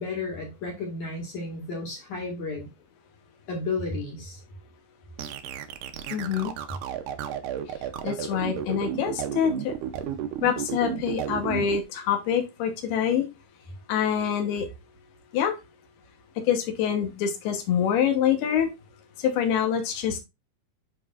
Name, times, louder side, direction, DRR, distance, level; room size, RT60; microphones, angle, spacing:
voice 1, 0.0-2.7 3.5-4.4, left 3 dB, 55° left, 0 dB, 2.9 m, -32 dB
sound 1, 5.2-11.8, right 9 dB, 75° right, 2.0 m, -32 dB
voice 2, 6.1-6.5 8.0-9.7 10.4-13.3 13.9-14.7 15.3-15.5 16.5-18.7 19.2-20.2, left 8 dB, 85° left, 5 dB, 3.1 m, -25 dB
10.5 x 3.9 x 2.4 m, 0.24 s
omnidirectional pair, 4.5 m